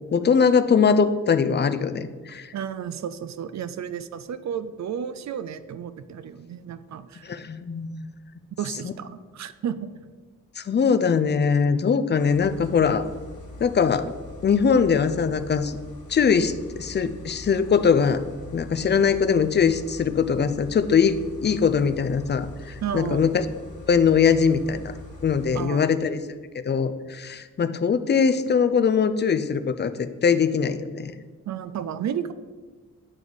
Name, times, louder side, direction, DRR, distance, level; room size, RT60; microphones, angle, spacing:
voice 1, 0.1-2.5 7.2-8.1 10.6-13.0 13.6-14.1 14.4-15.8 16.1-16.5 16.8-18.2 18.5-23.5 23.9-24.9 25.2-26.2 26.6-31.1, left 6 dB, 35° left, 12 dB, 0.4 m, -21 dB
voice 2, 2.5-7.4 8.6-9.9 22.8-23.2 25.5-25.9 31.5-32.3, right 8 dB, 55° right, 13 dB, 0.4 m, -32 dB
sound 1, 12.2-25.6, left 2 dB, 70° left, 1.4 m, -43 dB
8.9 x 3.1 x 4.0 m, 1.4 s
cardioid pair, 60°, 33 cm